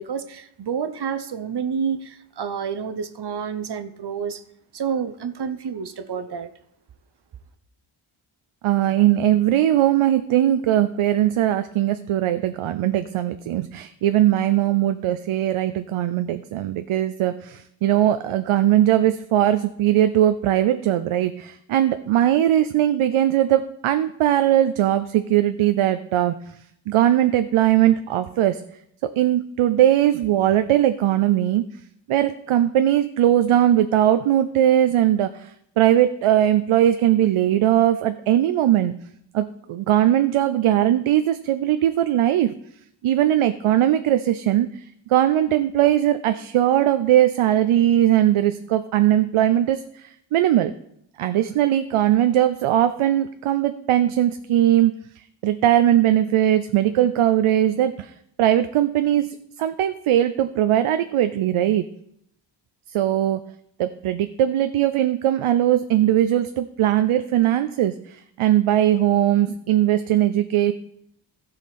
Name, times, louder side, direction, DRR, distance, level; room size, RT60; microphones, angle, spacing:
voice 1, 0.0-4.4 4.7-6.5, right 6 dB, 55° right, 11 dB, 1.0 m, -29 dB
voice 2, 8.6-26.3 26.9-28.6 29.2-31.6 32.1-38.9 39.3-42.5 43.0-44.7 45.1-50.7 51.2-54.9 55.4-58.1 58.4-59.3 59.6-61.9 62.9-63.4 63.8-70.7, right 12 dB, 90° right, 10 dB, 0.6 m, -20 dB
15.5 x 5.7 x 4.2 m, 0.74 s
cardioid pair, 80°, 48 cm